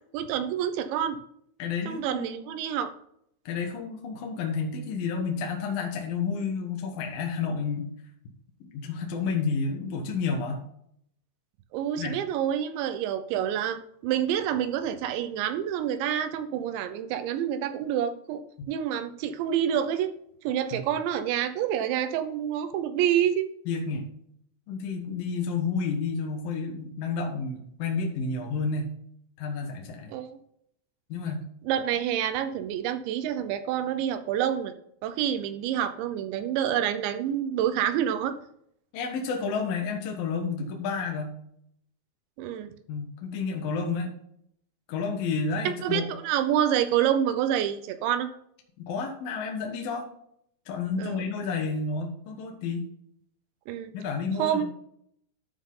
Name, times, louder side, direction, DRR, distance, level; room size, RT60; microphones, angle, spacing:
voice 1, 0.1-1.2 1.9-2.9 11.7-18.4 18.7-20.1 20.4-23.5 30.1-30.4 31.7-34.7 35.0-38.3 42.4-42.7 45.7-48.3 51.0-51.2 53.7-53.9 54.4-54.6, right 10 dB, 80° right, 10 dB, 3.0 m, -27 dB
voice 2, 1.6-2.4 3.5-7.9 8.6-10.6 12.0-12.2 18.6-18.7 20.7-20.8 23.7-24.1 24.7-28.9 29.4-30.1 31.1-31.4 38.9-41.4 42.9-44.1 44.9-46.1 48.8-50.1 50.7-52.9 53.9-54.6, left 5 dB, 65° left, 1 dB, 2.6 m, -30 dB
12.5 x 6.0 x 3.8 m, 0.70 s
omnidirectional pair, 5.4 m